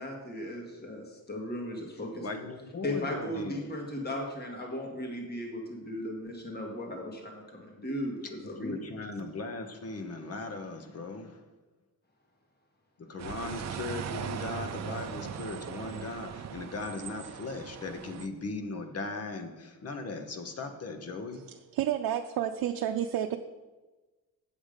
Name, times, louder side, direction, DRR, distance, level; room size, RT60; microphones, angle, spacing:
voice 1, 0.0-2.3 2.8-9.1, left 1 dB, 25° left, 1 dB, 1.7 m, -37 dB
voice 2, 2.2-3.7 8.4-11.4 13.0-21.4, left 3 dB, 45° left, 7 dB, 1.1 m, -38 dB
sound 1, 13.2-18.3, right 8 dB, 50° right, 0.6 m, -39 dB
voice 3, 21.7-23.4, right 10 dB, 90° right, 5 dB, 0.6 m, -30 dB
8.2 x 7.2 x 5.1 m, 1.2 s
cardioid pair, 140°, 36 cm